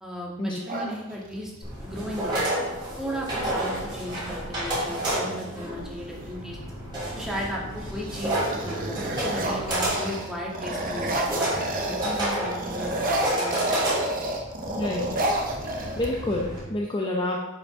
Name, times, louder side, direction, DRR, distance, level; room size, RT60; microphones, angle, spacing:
voice 1, 0.0-1.5 1.8-2.4 3.0-6.6 7.1-11.5 11.9-12.9 13.4-14.1, equal, ahead, -4 dB, 1.6 m, -35 dB
sound 1, 0.7-1.6 3.3-3.4 3.7-4.2 4.8-6.3 6.9-7.3 7.7-12.2 12.5-16.4, right 1 dB, 40° right, 0.9 m, -31 dB
sound 2, 1.6-16.6, right 1 dB, 20° right, 3.0 m, -31 dB
voice 2, 14.8-15.1 16.0-17.5, left 1 dB, 20° left, -1 dB, 0.6 m, -28 dB
11.0 x 5.2 x 3.6 m, 1.0 s
head